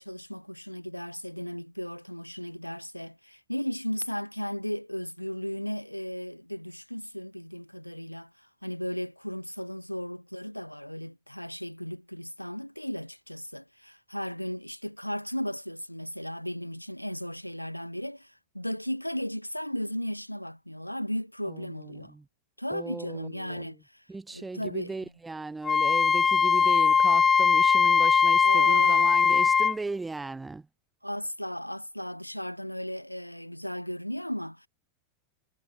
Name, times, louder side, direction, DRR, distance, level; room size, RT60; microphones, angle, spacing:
voice 1, 0.0-22.1 22.6-24.9 28.4-29.2 31.0-34.7, equal, 90° left, 2.1 m, -35 dB
voice 2, 21.5-22.2 22.7-23.8 24.1-30.7, right 3 dB, 10° right, 6.9 m, -38 dB
Wind instrument woodwind instrument, 25.6-29.8, left 6 dB, 20° left, 0.9 m, -21 dB
figure-of-eight pair, 90°, 0 cm